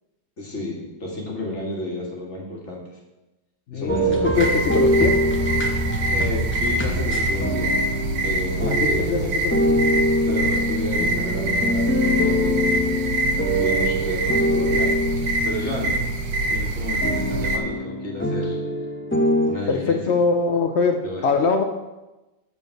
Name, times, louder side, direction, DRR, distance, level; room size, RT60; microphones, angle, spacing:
voice 1, 0.4-2.8 3.7-4.6 6.1-7.7 8.1-9.4 10.2-13.1 13.6-14.9 15.4-16.0 16.5-18.6 19.4-20.2 21.0-21.2, left 1 dB, 40° left, -2 dB, 1.9 m, -31 dB
voice 2, 3.7-5.2 8.7-9.8 19.7-21.6, left 5 dB, 65° left, 5 dB, 0.6 m, -23 dB
sound 1, 3.9-16.5 17.0-19.5, left 1 dB, 15° left, 0.4 m, -24 dB
sound 2, 4.3-17.6, right 2 dB, 90° right, 1.5 m, -25 dB
8.0 x 4.5 x 6.4 m, 1.0 s
omnidirectional pair, 1.9 m